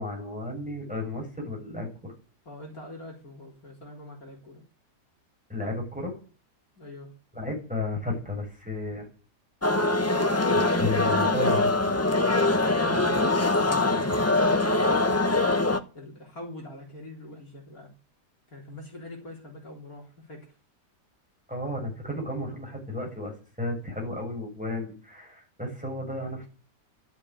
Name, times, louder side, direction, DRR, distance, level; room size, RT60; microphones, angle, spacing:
voice 1, 0.0-2.1 5.5-6.1 7.3-9.1 9.9-12.0 21.5-26.5, left 2 dB, 5° right, 0 dB, 7.1 m, -33 dB
voice 2, 2.5-4.6 6.8-7.1 12.8-15.6 15.9-17.9 18.5-20.5, left 1 dB, 55° left, 0 dB, 4.2 m, -43 dB
sound 1, 9.6-15.8, left 2 dB, 15° left, 0.6 m, -23 dB
12.5 x 12.0 x 9.9 m, 0.38 s
omnidirectional pair, 1.8 m